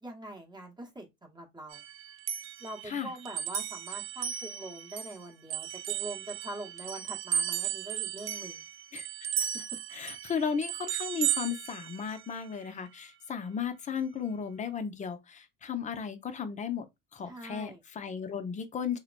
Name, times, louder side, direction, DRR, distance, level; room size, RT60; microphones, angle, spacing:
voice 1, 0.0-1.8 2.6-8.6 17.3-17.8, right 1 dB, 15° right, 1.1 m, -43 dB
sound 1, 1.7-5.2 5.5-12.4, right 9 dB, 40° right, 0.4 m, -35 dB
voice 2, 9.9-16.8 17.1-19.0, left 6 dB, 20° left, 0.5 m, -35 dB
2.8 x 2.1 x 2.5 m
supercardioid pair, 105°, 34 cm